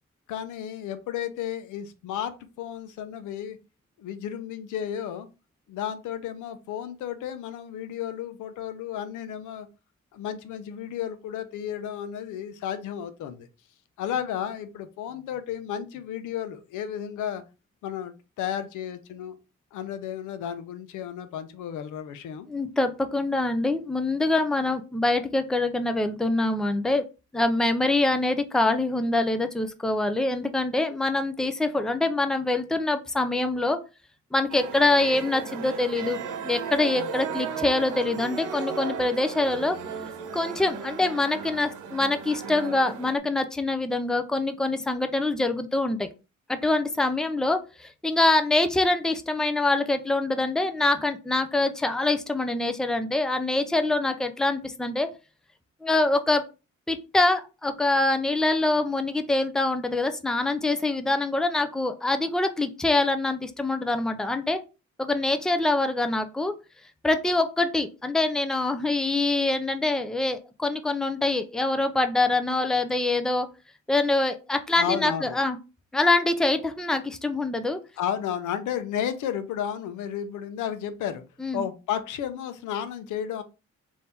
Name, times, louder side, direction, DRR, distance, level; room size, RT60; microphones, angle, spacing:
voice 1, 0.3-2.3 2.6-3.6 4.0-5.3 5.7-9.7 10.1-13.5 14.0-17.4 17.8-19.4 19.7-22.5 63.9-64.0 74.8-75.4 78.0-81.2 81.5-83.4, left 9 dB, 85° left, 0.7 m, -33 dB
voice 2, 22.5-27.0 27.3-33.8 34.3-36.2 36.4-39.8 40.3-46.1 46.5-55.1 55.8-56.4 56.9-64.6 65.0-66.5 67.0-73.5 73.9-75.6 75.9-77.8 81.4-81.6, left 2 dB, ahead, 0.5 m, -25 dB
sound 1, 34.5-43.2, right 6 dB, 85° right, 0.9 m, -35 dB
3.5 x 2.7 x 4.2 m
cardioid pair, 90°, 30 cm